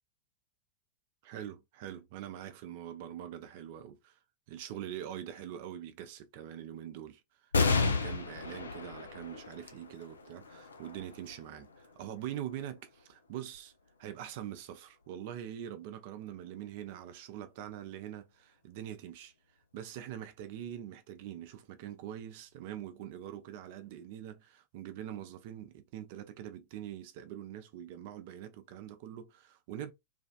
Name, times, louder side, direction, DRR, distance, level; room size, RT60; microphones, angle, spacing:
voice 1, 1.2-4.2 4.5-7.2 7.6-11.7 12.0-13.7 14.0-19.3 19.7-29.9, right 11 dB, 50° right, 0.6 m, -43 dB
sound 1, 7.5-14.4 15.0-15.1 16.3-16.8, left 4 dB, 75° left, 0.5 m, -35 dB
3.3 x 2.4 x 2.3 m
figure-of-eight pair, 90°, 0 cm